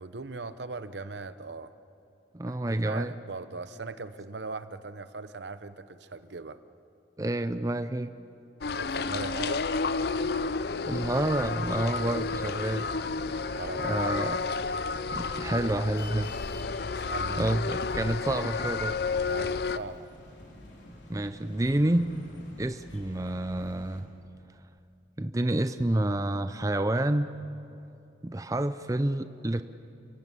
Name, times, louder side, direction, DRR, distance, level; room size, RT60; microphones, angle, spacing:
voice 1, 0.0-1.7 2.5-2.6 2.8-6.6 8.7-9.6 13.5-14.6 17.0-17.7 19.2-20.1, right 3 dB, 70° right, 12 dB, 0.8 m, -39 dB
voice 2, 2.3-3.1 7.2-8.1 10.8-12.9 13.8-14.4 15.1-16.3 17.4-19.0 21.1-22.1 22.6-24.1 25.2-27.3 28.2-29.6, right 1 dB, 20° right, 10 dB, 0.5 m, -28 dB
sound 1, 8.6-19.8, left 4 dB, 55° left, 0.5 m, -31 dB
sound 2, 10.7-24.0, left 1 dB, 75° left, 4.0 m, -49 dB
29.0 x 16.5 x 8.3 m, 2.7 s
head